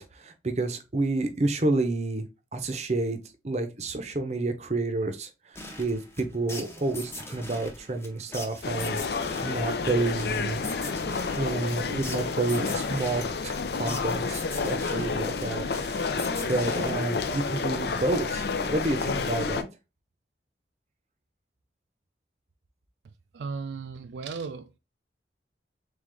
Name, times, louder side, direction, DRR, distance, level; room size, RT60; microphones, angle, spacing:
voice 1, 0.0-2.2 2.5-3.2 3.4-10.6 11.4-15.6 16.5-19.7, right 2 dB, 40° right, 0.7 m, -29 dB
sound 1, 5.6-17.7, left 2 dB, 15° left, 0.7 m, -42 dB
sound 2, 8.6-19.6, left 4 dB, 65° left, 0.5 m, -30 dB
voice 2, 23.3-24.8, right 5 dB, 80° right, 0.4 m, -36 dB
3.8 x 3.5 x 3.3 m
head